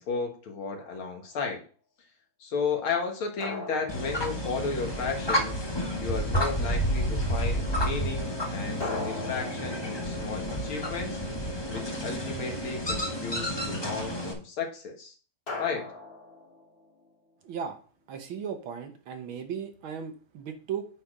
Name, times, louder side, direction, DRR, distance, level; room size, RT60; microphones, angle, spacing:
voice 1, 0.0-1.6 2.4-5.6 6.0-11.2 11.7-15.1 15.6-15.9, left 5 dB, 75° left, 3 dB, 2.3 m, -34 dB
sound 1, 0.8-1.4 3.4-5.2 8.8-11.4 15.5-17.1, left 3 dB, 40° left, 3.0 m, -40 dB
sound 2, 3.9-14.3, equal, 20° left, 0.6 m, -30 dB
voice 2, 17.4-17.8 18.1-20.9, right 7 dB, 70° right, 6 dB, 1.8 m, -36 dB
8.6 x 4.4 x 4.8 m, 0.40 s
omnidirectional pair, 2.4 m